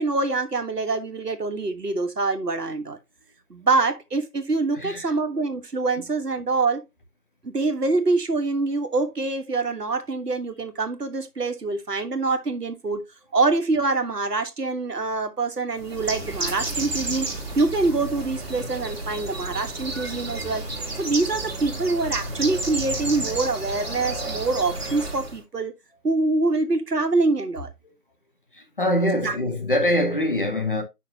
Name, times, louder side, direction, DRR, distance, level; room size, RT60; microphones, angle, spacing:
voice 1, 0.0-3.0 3.5-6.8 7.4-13.0 13.3-17.3 17.5-20.6 21.0-25.7 26.0-27.7 29.2-29.3, right 3 dB, 85° right, 1.5 m, -25 dB
voice 2, 4.7-5.0 28.6-30.8, left 1 dB, 35° left, 1.5 m, -23 dB
Bird, 15.8-25.4, right 2 dB, 40° right, 1.5 m, -31 dB
7.2 x 5.8 x 2.8 m
figure-of-eight pair, 165°, 46 cm